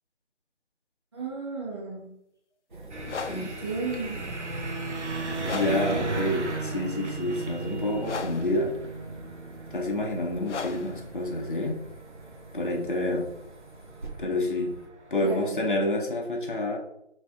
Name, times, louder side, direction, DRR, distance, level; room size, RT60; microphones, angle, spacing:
voice 1, 1.1-2.1 3.2-4.2 15.2-15.7, right 3 dB, 20° right, -9 dB, 1.2 m, -34 dB
sound 1, 2.7-14.9, right 2 dB, 45° right, 0.6 m, -47 dB
sound 2, 2.9-15.4, right 3 dB, 85° right, 0.8 m, -36 dB
sound 3, 3.0-12.9, left 5 dB, 85° left, 0.5 m, -39 dB
voice 2, 5.5-8.7 9.7-11.8 12.5-13.3 14.2-14.7 15.1-16.8, left 1 dB, 50° left, 0 dB, 0.7 m, -28 dB
3.2 x 2.7 x 3.4 m, 0.75 s
figure-of-eight pair, 170°, 34 cm